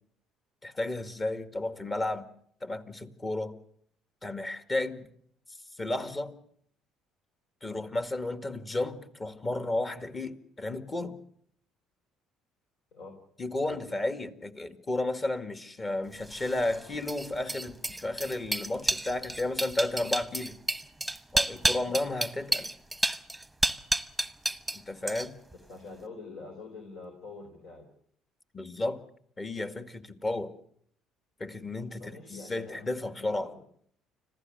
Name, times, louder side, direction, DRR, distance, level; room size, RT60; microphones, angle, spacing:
voice 1, 0.6-2.3 2.6-3.5 4.2-5.1 5.8-6.3 7.6-11.2 13.4-20.6 21.3-22.7 24.7-25.4 28.5-29.0 29.4-30.5 31.4-33.5, left 2 dB, 30° left, 9 dB, 2.1 m, -33 dB
sound 1, 16.3-24.8 25.1-25.5, right 2 dB, 5° right, 1.1 m, -30 dB
voice 2, 25.5-27.9 32.0-32.9 33.2-33.6, left 3 dB, 70° left, 4 dB, 3.9 m, -46 dB
26.0 x 15.5 x 7.9 m, 0.65 s
hypercardioid pair, 65°, 0 cm